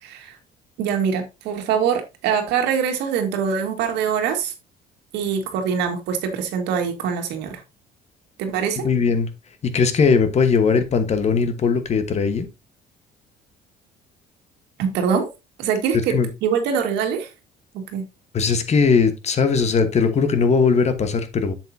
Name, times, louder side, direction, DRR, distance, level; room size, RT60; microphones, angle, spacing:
voice 1, 0.0-0.4 0.8-4.5 5.1-7.6 8.4-8.8 14.8-15.3 15.6-16.1 16.4-17.3 17.7-18.0, right 7 dB, 90° right, 1.9 m, -23 dB
voice 2, 8.8-9.3 9.6-12.5 15.9-16.3 18.3-21.5, left 5 dB, 40° left, 1.2 m, -19 dB
7.5 x 7.2 x 2.7 m
cardioid pair, 110°, 17 cm